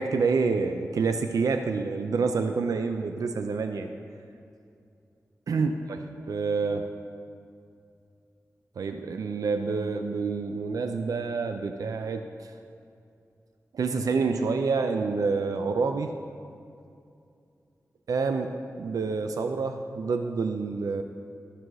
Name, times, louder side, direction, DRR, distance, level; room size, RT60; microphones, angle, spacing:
voice 1, 0.0-3.9 5.5-6.9 8.8-12.5 13.7-16.1 18.1-21.0, right 4 dB, 85° right, 7 dB, 0.4 m, -28 dB
12.5 x 4.7 x 6.1 m, 2.5 s
wide cardioid pair, 105°, 6 cm